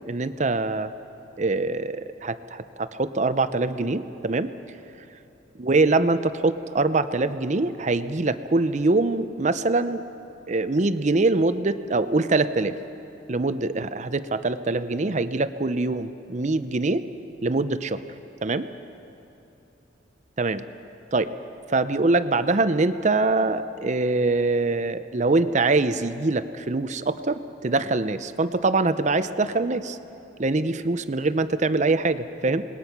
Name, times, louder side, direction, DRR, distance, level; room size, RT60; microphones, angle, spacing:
voice 1, 0.1-0.9 1.4-4.5 5.6-10.0 10.5-12.8 13.3-17.1 17.4-18.0 18.4-18.7 20.4-20.6 21.1-21.3 21.7-30.0 30.4-32.7, right 3 dB, 40° right, 12 dB, 0.7 m, -23 dB
26.5 x 20.0 x 5.9 m, 2.9 s
head